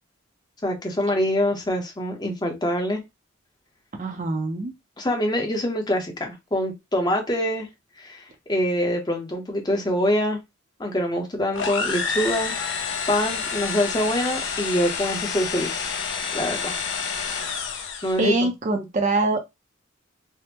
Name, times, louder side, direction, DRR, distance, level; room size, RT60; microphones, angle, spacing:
voice 1, 0.6-3.0 5.0-7.7 8.0-10.4 10.8-12.8 13.1-15.9 16.3-16.8 18.0-18.5, left 1 dB, 20° left, 0.6 m, -25 dB
voice 2, 4.0-4.7 18.2-19.5, right 2 dB, 35° right, 0.5 m, -24 dB
sound 1, 11.5-18.2, left 6 dB, 60° left, 0.4 m, -29 dB
3.4 x 2.0 x 2.8 m
head